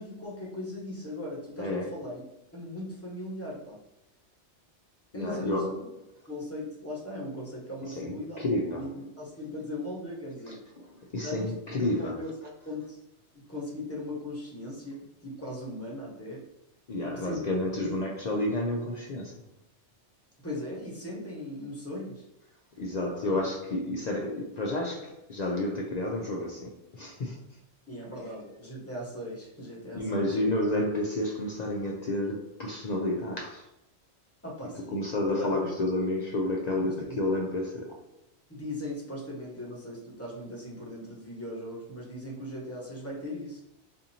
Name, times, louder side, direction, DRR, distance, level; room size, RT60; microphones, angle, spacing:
voice 1, 0.0-2.2 2.5-3.8 5.1-5.8 6.3-8.9 9.2-10.6 11.2-11.5 11.8-13.0 13.3-16.4 17.0-17.4 17.7-18.0 20.4-22.2 23.3-23.4 27.9-30.3 34.4-35.7 36.8-37.2 38.5-43.6, left 1 dB, 15° left, 1.1 m, -38 dB
voice 2, 1.6-2.0 5.1-5.8 7.9-8.9 10.5-12.3 16.9-19.5 22.8-27.6 29.9-33.7 34.7-38.0, left 1 dB, 60° left, 0.4 m, -31 dB
4.2 x 2.7 x 2.7 m
omnidirectional pair, 1.2 m